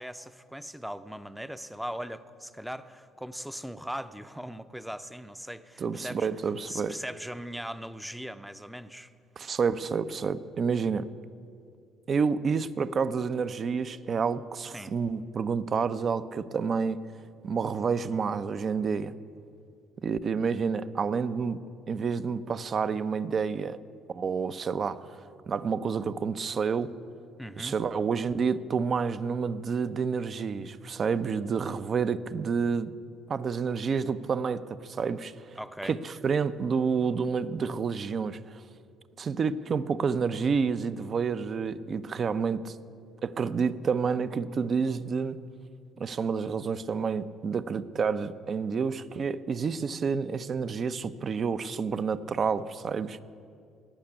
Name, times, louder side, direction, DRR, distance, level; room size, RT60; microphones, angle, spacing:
voice 1, 0.0-6.3 6.7-9.1 14.7-14.9 27.4-27.8 35.6-36.0, equal, ahead, 11 dB, 0.6 m, -39 dB
voice 2, 5.8-7.0 9.4-11.1 12.1-17.0 17.4-19.2 20.0-21.6 21.9-23.8 24.1-25.2 25.5-26.9 27.6-32.9 33.3-35.3 35.8-38.6 39.2-42.8 43.2-45.4 46.0-53.2, right 5 dB, 45° right, 14 dB, 0.5 m, -29 dB
17.5 x 5.9 x 9.8 m, 2.4 s
supercardioid pair, 90°, 0 cm